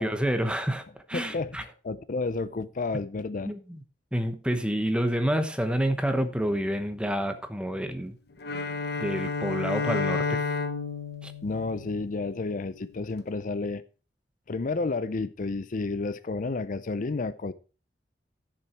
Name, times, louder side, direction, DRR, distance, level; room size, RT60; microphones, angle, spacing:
voice 1, 0.0-1.6 3.4-3.8 4.1-8.1 9.0-10.4 11.2-11.3, equal, 5° right, 1.0 m, -28 dB
voice 2, 1.1-3.5 11.4-13.8 14.5-17.5, left 3 dB, 50° left, 0.5 m, -31 dB
Bowed string instrument, 8.4-12.6, left 4 dB, 65° left, 1.1 m, -31 dB
12.0 x 7.0 x 4.4 m
head